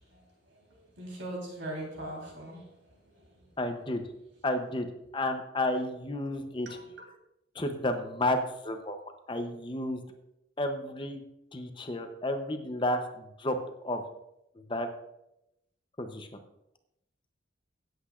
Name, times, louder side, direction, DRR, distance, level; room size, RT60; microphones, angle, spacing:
voice 1, 1.0-2.7 3.1-3.2 6.7-6.8, right 1 dB, 80° right, -1 dB, 3.8 m, -40 dB
voice 2, 3.6-4.0 4.4-4.9 5.1-6.8 7.5-9.0 9.3-10.0 10.6-11.2 11.5-13.6 13.8-14.0 14.6-14.9 16.0-16.3, left 1 dB, 25° left, 6 dB, 0.7 m, -31 dB
16.5 x 8.0 x 2.5 m, 0.85 s
head